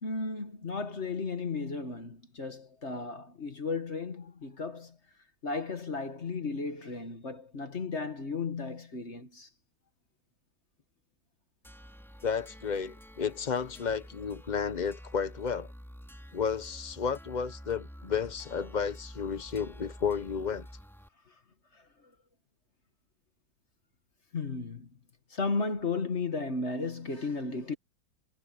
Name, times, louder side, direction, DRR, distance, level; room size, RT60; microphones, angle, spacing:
voice 1, 0.0-5.0 5.4-9.5 21.3-21.4 21.7-21.8 24.3-24.9 25.3-27.8, left 4 dB, 35° left, 1.7 m, -34 dB
sound 1, 11.6-21.1, equal, ahead, 3.9 m, -49 dB
voice 2, 12.2-15.7 16.3-20.7, left 6 dB, 75° left, 0.4 m, -32 dB
omnidirectional pair, 2.1 m